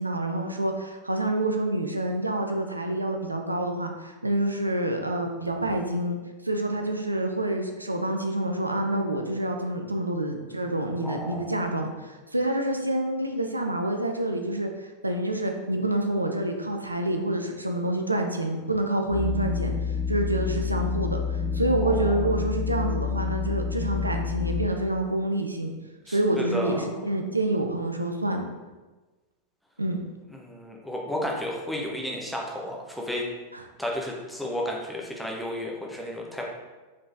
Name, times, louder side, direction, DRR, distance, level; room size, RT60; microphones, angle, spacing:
voice 1, 0.0-6.2 6.4-19.7 20.1-25.7 26.1-28.5 29.8-30.0 33.5-33.6, right 1 dB, 85° right, 4 dB, 0.4 m, -27 dB
voice 2, 11.0-11.8 21.8-22.2 26.1-27.0 30.3-33.2 33.8-36.5, left 1 dB, ahead, -2 dB, 0.8 m, -33 dB
sound 1, 19.1-24.7, left 5 dB, 45° right, 1.4 m, -28 dB
4.9 x 3.6 x 2.6 m, 1.2 s
figure-of-eight pair, 90°, 0 cm